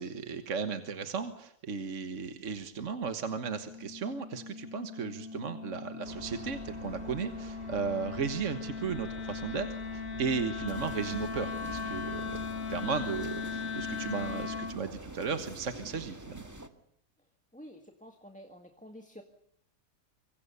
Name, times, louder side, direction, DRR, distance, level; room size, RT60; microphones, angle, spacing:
voice 1, 0.0-12.4 12.7-16.4, right 5 dB, 55° right, 8 dB, 1.7 m, -35 dB
Wind instrument woodwind instrument, 3.3-14.8, left 5 dB, 60° left, 1.5 m, -39 dB
sound 1, 6.0-13.3, right 3 dB, 35° right, 2.4 m, -48 dB
sound 2, 10.7-16.7, right 1 dB, 10° right, 1.6 m, -46 dB
voice 2, 17.5-19.2, equal, 5° left, 5 dB, 1.7 m, -50 dB
26.0 x 23.5 x 6.9 m, 0.68 s
omnidirectional pair, 1.7 m